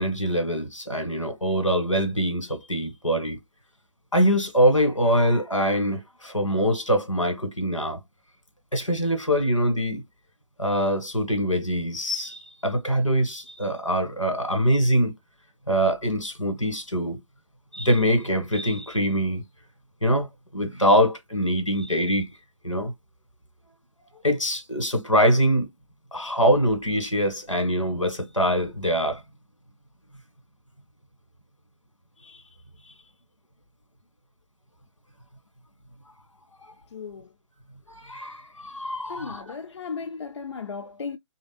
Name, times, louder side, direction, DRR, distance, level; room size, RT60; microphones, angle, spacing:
voice 1, 0.0-3.4 4.1-8.0 8.7-10.0 10.6-15.1 15.7-17.2 17.7-19.4 20.0-20.3 20.5-22.3 22.6-22.9 24.2-25.7 26.1-29.2 32.3-32.4 37.9-39.6, equal, 90° left, 1.6 m, -23 dB
voice 2, 36.9-37.3 39.1-41.2, left 5 dB, 60° left, 0.4 m, -35 dB
3.3 x 2.7 x 2.3 m
figure-of-eight pair, 135°, 16 cm